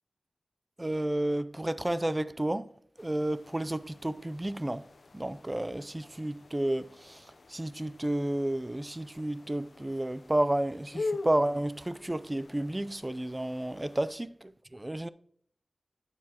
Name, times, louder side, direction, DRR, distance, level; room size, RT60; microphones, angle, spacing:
voice 1, 0.8-2.7 3.0-4.8 5.1-7.2 7.5-14.3 14.7-15.1, right 1 dB, 20° right, 0.4 m, -31 dB
sound 1, 3.0-14.2, left 3 dB, 65° left, 0.6 m, -44 dB
12.0 x 7.6 x 2.9 m
wide cardioid pair, 100°, 0 cm